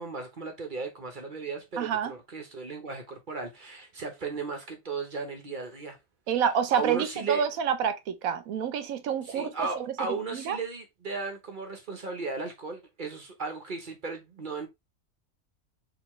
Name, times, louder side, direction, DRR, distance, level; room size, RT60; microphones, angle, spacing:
voice 1, 0.0-6.0 6.7-7.4 9.2-14.7, right 4 dB, 40° right, 1.0 m, -36 dB
voice 2, 1.8-2.1 6.3-9.5 10.3-10.6, right 8 dB, 80° right, 1.1 m, -28 dB
4.5 x 3.1 x 3.1 m
omnidirectional pair, 1.4 m